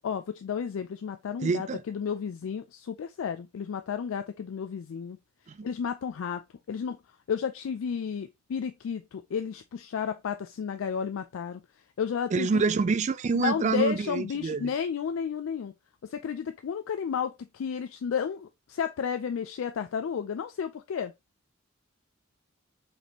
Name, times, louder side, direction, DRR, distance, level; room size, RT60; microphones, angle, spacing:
voice 1, 0.0-5.2 5.6-6.4 6.7-7.0 7.3-11.6 12.0-12.6 13.3-15.7 16.0-21.1, left 7 dB, 70° left, 0.3 m, -32 dB
voice 2, 1.4-1.8 5.5-5.7 12.3-14.7, right 4 dB, 35° right, 0.3 m, -27 dB
4.1 x 3.3 x 2.9 m
head